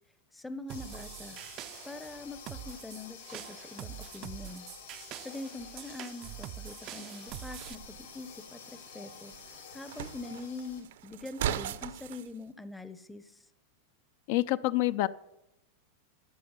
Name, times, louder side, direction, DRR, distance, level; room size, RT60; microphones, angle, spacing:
voice 1, 0.3-1.4 1.8-4.7 5.2-13.5, left 2 dB, 5° left, 12 dB, 0.7 m, -44 dB
sound 1, 0.7-10.8, left 8 dB, 80° left, 4.8 m, -50 dB
sound 2, 0.7-7.7, right 15 dB, 35° right, 0.4 m, -45 dB
sound 3, 7.3-12.3, right 10 dB, 70° right, 0.7 m, -40 dB
voice 2, 14.3-15.1, left 17 dB, 55° left, 16 dB, 0.5 m, -27 dB
11.0 x 8.6 x 8.1 m, 0.89 s
supercardioid pair, 155°, 0 cm